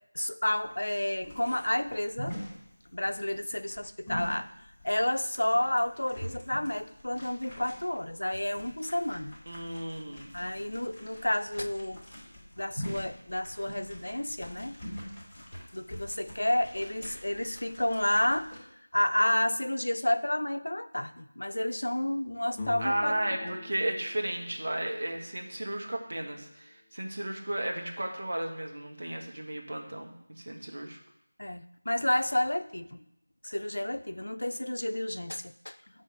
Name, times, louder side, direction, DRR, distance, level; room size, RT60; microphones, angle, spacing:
voice 1, 0.1-2.4 2.9-4.5 4.8-9.4 10.3-12.0 12.6-14.8 15.7-18.5 18.9-23.2 23.4-23.5 31.4-33.0 33.4-35.8, left 1 dB, 80° left, 11 dB, 0.6 m, -30 dB
sound 1, 0.6-18.6, equal, 5° left, 3.0 m, -44 dB
voice 2, 9.5-10.3 22.8-31.0, right 1 dB, 60° right, 2 dB, 1.6 m, -34 dB
sound 2, 22.5-26.2, left 4 dB, 20° left, 0.5 m, -46 dB
8.4 x 4.0 x 6.7 m, 0.79 s
figure-of-eight pair, 170°, 0 cm